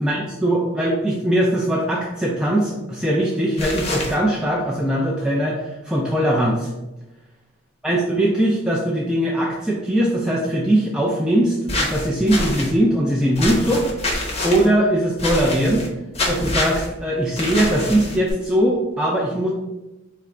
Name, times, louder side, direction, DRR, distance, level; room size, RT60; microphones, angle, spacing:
voice 1, 0.0-6.7 7.8-13.9 14.4-15.9 16.3-19.5, right 1 dB, 5° right, -4 dB, 0.3 m, -20 dB
sound 1, 3.6-4.1 11.7-12.7 13.4-14.7 15.2-15.9 16.1-16.9 17.4-18.3, left 1 dB, 30° left, 0.7 m, -25 dB
3.8 x 2.4 x 3.2 m, 1.0 s
head